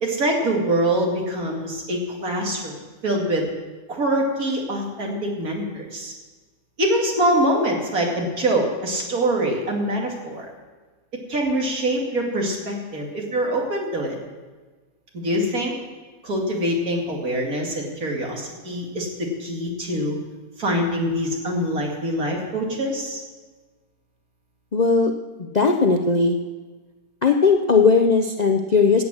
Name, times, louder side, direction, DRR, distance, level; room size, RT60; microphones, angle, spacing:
voice 1, 0.0-2.7 3.0-3.5 3.9-6.1 6.8-10.4 11.3-14.2 15.1-15.7 16.2-20.1 20.6-23.2, right 1 dB, 70° right, 0 dB, 2.8 m, -24 dB
voice 2, 24.7-25.1 25.4-26.4 27.2-29.0, left 4 dB, 45° left, 4 dB, 0.5 m, -18 dB
15.0 x 8.9 x 6.3 m, 1.3 s
omnidirectional pair, 1.6 m